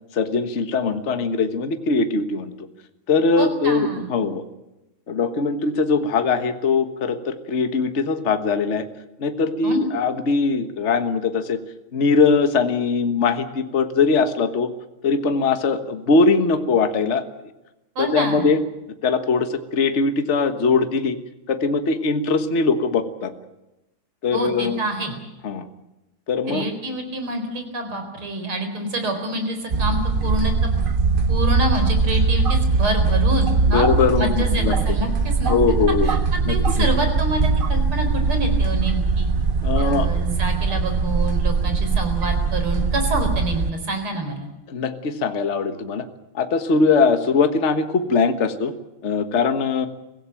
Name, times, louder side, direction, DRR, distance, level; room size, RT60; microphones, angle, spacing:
voice 1, 0.1-2.5 3.1-4.4 5.1-8.9 9.2-11.6 11.9-14.7 15.0-17.2 18.0-18.6 19.0-21.2 21.5-23.3 24.2-24.8 25.4-25.7 26.3-26.7 33.7-35.0 35.5-36.1 36.4-36.9 39.6-40.1 44.7-46.0 46.3-48.7 49.0-49.9, left 4 dB, 35° left, 8 dB, 1.5 m, -21 dB
voice 2, 3.4-4.0 9.6-9.8 18.0-18.5 24.3-25.2 26.5-30.7 31.3-33.9 34.2-35.6 36.0-36.2 36.5-39.3 39.8-44.5, right 1 dB, 85° right, 6 dB, 5.2 m, -27 dB
sound 1, 29.7-43.7, right 4 dB, 55° right, 0.6 m, -21 dB
24.0 x 16.5 x 9.1 m, 0.97 s
omnidirectional pair, 2.3 m